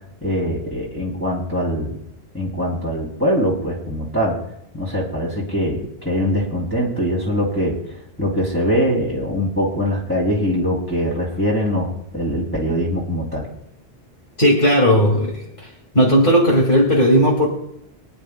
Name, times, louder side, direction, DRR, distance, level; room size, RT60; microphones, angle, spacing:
voice 1, 0.2-2.0 2.3-4.4 4.7-7.7 8.2-13.5, equal, 10° left, -6 dB, 2.8 m, -22 dB
voice 2, 14.4-15.7 15.9-17.5, equal, 50° left, -1 dB, 2.3 m, -15 dB
24.5 x 10.0 x 2.2 m, 0.79 s
omnidirectional pair, 1.1 m